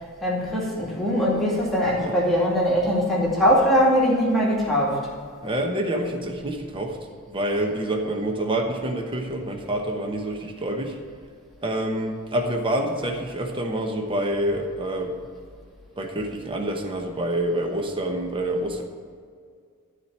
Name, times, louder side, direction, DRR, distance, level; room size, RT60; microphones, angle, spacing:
voice 1, 0.2-5.0, equal, ahead, -6 dB, 2.3 m, -21 dB
voice 2, 5.4-7.0 7.3-11.0 11.6-15.2 16.0-18.8, right 1 dB, 25° right, 3 dB, 1.0 m, -27 dB
13.0 x 4.4 x 8.5 m, 2.1 s
head